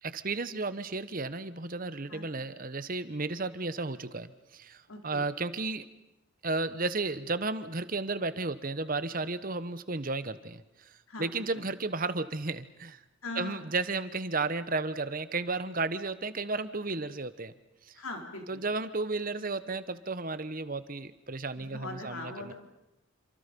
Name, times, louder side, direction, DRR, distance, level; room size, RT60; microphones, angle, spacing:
voice 1, 0.0-5.9 6.4-10.6 11.2-13.0 13.3-17.5 18.5-22.5, right 3 dB, 40° right, 13 dB, 1.1 m, -33 dB
voice 2, 4.9-5.2 11.1-11.6 13.2-13.7 18.0-18.6 21.6-22.5, left 2 dB, 85° left, 3 dB, 4.2 m, -41 dB
28.5 x 26.5 x 5.4 m, 0.92 s
head